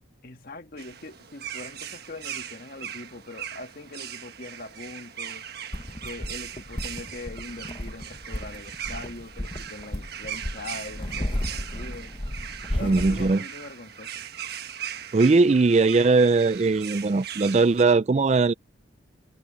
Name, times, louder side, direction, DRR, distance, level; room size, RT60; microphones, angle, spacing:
voice 1, 0.2-5.5 6.0-12.1 12.7-14.2, left 2 dB, 45° left, 1.6 m, -42 dB
sound 1, 0.8-17.8, right 9 dB, 50° right, 1.3 m, -39 dB
sound 2, 5.7-13.4, left 1 dB, 25° left, 1.2 m, -34 dB
voice 2, 12.8-13.4 15.1-18.5, right 3 dB, 35° right, 0.4 m, -20 dB
head